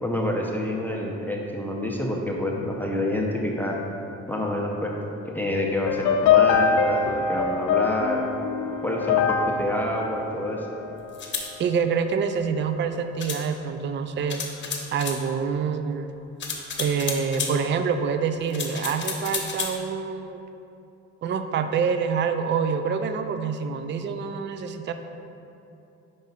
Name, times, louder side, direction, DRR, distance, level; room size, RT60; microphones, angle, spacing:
voice 1, 0.0-3.8 4.3-4.9 5.3-8.2 8.8-10.7, left 1 dB, 5° left, -1 dB, 0.6 m, -28 dB
sound 1, 5.9-11.2, left 6 dB, 70° left, 0.5 m, -23 dB
sound 2, 11.1-11.5 13.2-13.4 14.3-15.2 16.4-17.5 18.5-19.8, left 5 dB, 40° left, 0.9 m, -31 dB
voice 2, 11.6-14.4 14.9-16.1 16.8-20.4 21.2-24.9, right 6 dB, 40° right, 8 dB, 0.4 m, -26 dB
5.3 x 4.8 x 4.0 m, 2.8 s
cardioid pair, 90°, 30 cm